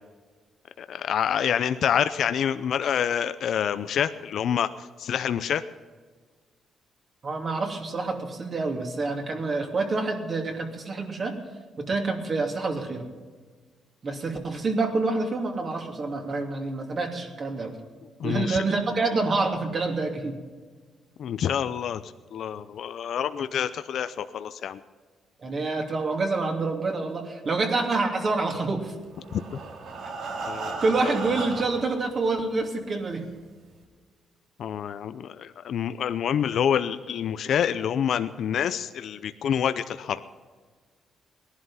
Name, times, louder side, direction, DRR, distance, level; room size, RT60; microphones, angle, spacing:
voice 1, 0.8-4.7 5.0-5.6 18.2-18.6 21.2-22.0 22.3-24.8 29.3-29.4 30.5-31.1 34.6-40.2, left 8 dB, 65° left, 11 dB, 0.6 m, -27 dB
voice 2, 7.2-11.3 11.8-13.1 14.0-17.7 18.2-20.3 25.4-28.9 30.8-33.2, right 3 dB, 45° right, 2 dB, 2.9 m, -27 dB
Breathing, 29.1-32.0 32.8-32.9 33.2-33.3 33.8-33.9, right 3 dB, 70° right, 2.5 m, -35 dB
18.5 x 11.5 x 5.7 m, 1.5 s
cardioid pair, 90°, 0 cm